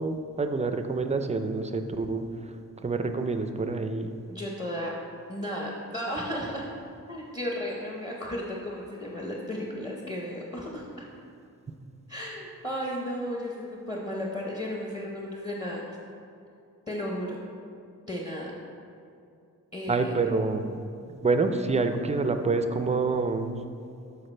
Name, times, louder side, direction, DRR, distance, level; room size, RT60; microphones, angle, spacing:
voice 1, 0.0-2.2 2.8-4.1 19.9-20.8 21.2-23.5, right 3 dB, 20° right, 7 dB, 0.4 m, -27 dB
voice 2, 4.2-4.9 5.3-6.7 7.1-11.1 12.1-16.0 16.9-17.4 18.1-18.5 19.7-20.1, equal, 20° left, -3 dB, 0.8 m, -34 dB
12.5 x 4.6 x 3.3 m, 2.5 s
wide cardioid pair, 150°, 34 cm